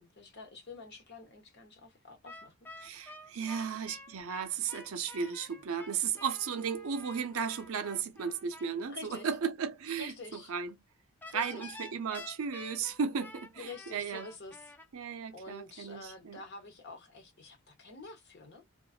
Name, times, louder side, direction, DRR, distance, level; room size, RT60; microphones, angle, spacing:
voice 1, 0.0-2.5 2.8-3.8 8.9-9.3 10.0-10.5 11.3-11.7 13.6-14.6 15.3-18.6, left 3 dB, 50° left, 0.8 m, -48 dB
sound 1, 2.2-8.7 11.2-14.9, left 2 dB, 10° left, 0.3 m, -50 dB
voice 2, 2.8-10.8 11.3-14.3 14.9-16.4, right 6 dB, 70° right, 0.5 m, -35 dB
2.4 x 2.2 x 2.3 m
head